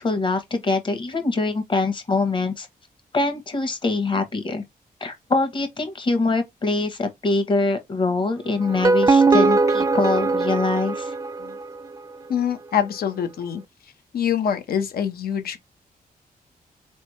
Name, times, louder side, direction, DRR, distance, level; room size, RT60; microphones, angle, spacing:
voice 1, 0.0-2.7 3.1-4.6 5.0-11.1, left 3 dB, 30° left, 1.2 m, -24 dB
sound 1, 8.6-11.8, right 3 dB, 20° right, 0.3 m, -20 dB
voice 2, 12.3-13.6 14.1-15.6, left 8 dB, 80° left, 1.0 m, -25 dB
4.3 x 3.4 x 3.2 m
wide cardioid pair, 160°, 16 cm